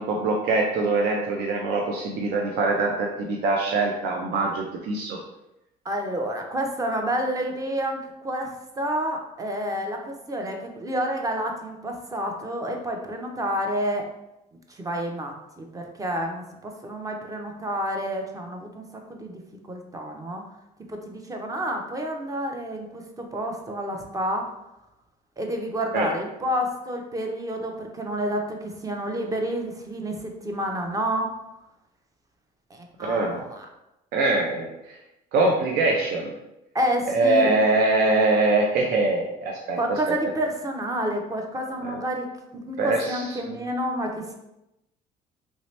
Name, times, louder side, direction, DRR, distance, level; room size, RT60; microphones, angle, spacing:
voice 1, 0.0-5.2 25.9-26.1 33.0-33.4 34.1-35.0 35.3-36.3 37.1-40.0 41.8-42.0 42.8-43.5, right 2 dB, 75° right, -1 dB, 0.5 m, -23 dB
voice 2, 5.8-14.0 14.7-19.4 19.7-20.4 20.9-24.5 25.4-31.3 32.7-33.7 36.7-37.5 39.8-42.3 42.5-44.3, equal, 20° right, 2 dB, 0.5 m, -29 dB
3.1 x 2.8 x 3.1 m, 0.90 s
cardioid pair, 110°, 17 cm